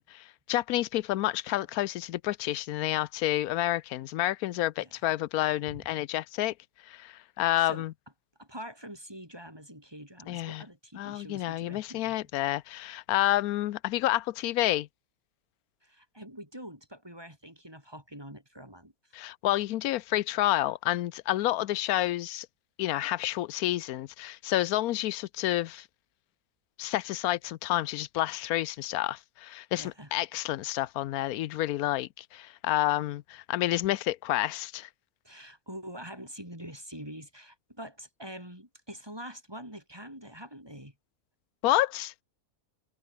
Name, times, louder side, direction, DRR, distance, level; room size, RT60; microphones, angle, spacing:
voice 1, 0.0-6.5 6.9-7.9 10.3-10.6 10.9-14.9 19.1-22.5 22.8-25.8 26.8-34.9 41.6-42.1, left 15 dB, 80° left, 1.1 m, -29 dB
voice 2, 8.4-12.3 15.8-18.9 29.8-30.1 35.2-40.9, equal, 15° right, 7.2 m, -45 dB
omnidirectional pair, 1.6 m